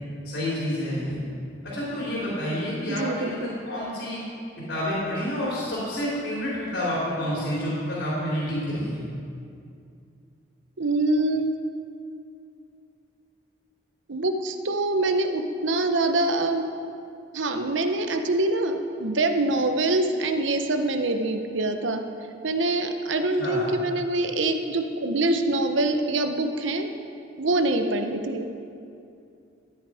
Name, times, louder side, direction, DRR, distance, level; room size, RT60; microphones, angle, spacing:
voice 1, 0.2-1.2 1.6-3.4 3.7-4.2 4.6-9.0 23.4-23.6, equal, 70° left, -7 dB, 3.5 m, -29 dB
voice 2, 2.9-3.5 10.8-11.6 14.1-16.7 17.3-22.0 22.4-26.9 27.4-28.5, right 2 dB, 85° right, 6 dB, 0.9 m, -25 dB
13.5 x 9.6 x 4.9 m, 2.5 s
head